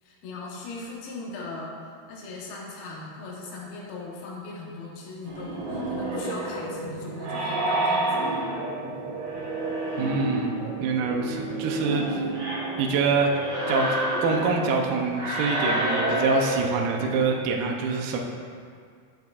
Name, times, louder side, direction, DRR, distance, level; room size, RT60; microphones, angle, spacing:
voice 1, 0.0-8.3 11.8-12.3, left 3 dB, 80° left, -4 dB, 2.9 m, -39 dB
sound 1, 5.2-17.2, right 1 dB, 65° right, 3.1 m, -29 dB
voice 2, 10.0-12.0 12.8-18.2, right 4 dB, 80° right, 1 dB, 2.4 m, -25 dB
8.9 x 7.8 x 2.4 m, 2.1 s
omnidirectional pair, 4.4 m